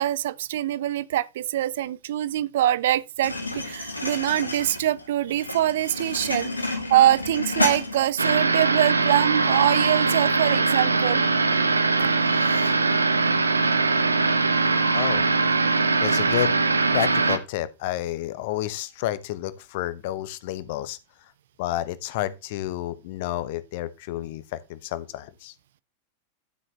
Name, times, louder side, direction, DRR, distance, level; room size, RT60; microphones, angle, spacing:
voice 1, 0.0-11.2 12.0-12.1, right 13 dB, 55° right, 0.4 m, -24 dB
sound 1, 3.2-8.3, left 2 dB, 80° left, 2.0 m, -30 dB
sound 2, 8.2-17.4, right 3 dB, 80° right, 1.0 m, -21 dB
voice 2, 14.9-15.3 16.0-16.5 16.9-21.0 21.6-25.5, left 14 dB, 50° left, 0.9 m, -30 dB
12.0 x 7.7 x 3.2 m
figure-of-eight pair, 90°, 0 cm